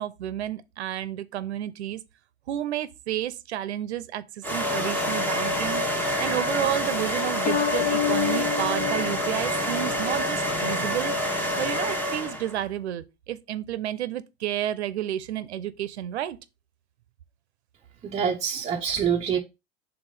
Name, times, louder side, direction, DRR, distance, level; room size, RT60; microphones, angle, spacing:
voice 1, 0.0-2.0 2.5-5.8 6.2-11.1 11.6-16.4, right 12 dB, 90° right, 0.7 m, -31 dB
sound 1, 4.4-12.6, equal, 5° left, 1.1 m, -27 dB
sound 2, 7.5-10.1, left 9 dB, 25° left, 0.5 m, -28 dB
voice 2, 18.0-19.4, right 7 dB, 20° right, 0.7 m, -26 dB
4.9 x 3.7 x 5.4 m
hypercardioid pair, 115°, 32 cm